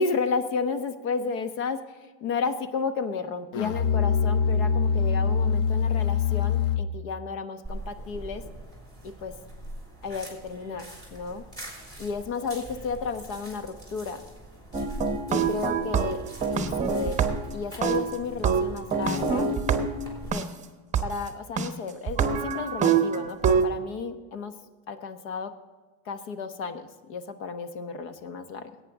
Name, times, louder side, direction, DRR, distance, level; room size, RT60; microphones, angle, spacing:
voice 1, 0.0-1.8 2.2-8.4 9.0-9.3 10.0-10.9 11.1-11.4 12.0-14.2 15.3-16.2 16.5-17.2 17.5-19.5 20.3-20.4 21.0-24.5 24.9-25.5 26.1-28.7, left 5 dB, 80° left, 9 dB, 1.3 m, -32 dB
Musical instrument, 3.5-7.1, left 6 dB, 50° left, 0.7 m, -24 dB
sound 1, 7.6-20.3, right 1 dB, 10° left, 3.3 m, -43 dB
sound 2, 14.7-17.5 17.8-20.4 20.9-21.0 21.6-21.7 22.1-23.7, right 6 dB, 20° right, 0.8 m, -25 dB
17.0 x 8.7 x 3.8 m, 1.4 s
cardioid pair, 150°, 37 cm